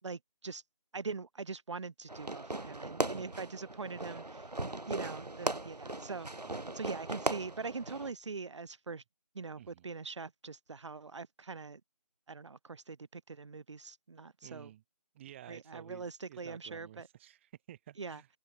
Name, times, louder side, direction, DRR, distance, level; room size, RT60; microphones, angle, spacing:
voice 1, 0.0-0.6 0.9-4.5 4.9-6.3 6.7-9.0 9.3-11.8 12.3-14.7 15.5-17.1 18.0-18.2, right 4 dB, 45° right, 3.9 m, -42 dB
Fireworks, 2.1-8.1, right 2 dB, 80° right, 7.2 m, -38 dB
voice 2, 6.4-6.8 9.5-9.9 14.4-14.8 15.1-18.3, right 12 dB, 20° right, 4.8 m, -53 dB
figure-of-eight pair, 165°, 20 cm